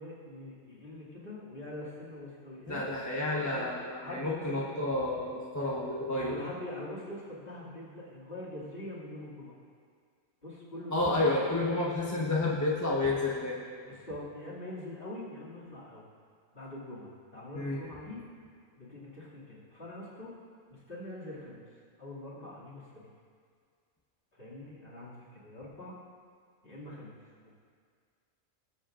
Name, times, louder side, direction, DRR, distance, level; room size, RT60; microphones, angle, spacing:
voice 1, 0.0-2.8 3.3-5.0 6.2-9.6 10.4-11.6 12.1-12.2 13.8-16.1 16.5-18.2 18.8-20.3 20.7-21.6 22.0-23.1 24.4-25.9 26.6-27.5, left 1 dB, 40° left, -9 dB, 2.8 m, -44 dB
voice 2, 2.7-6.3 10.9-13.6 17.5-17.8, left 2 dB, 15° left, -5 dB, 1.1 m, -30 dB
20.0 x 8.4 x 2.6 m, 2.1 s
omnidirectional pair, 1.4 m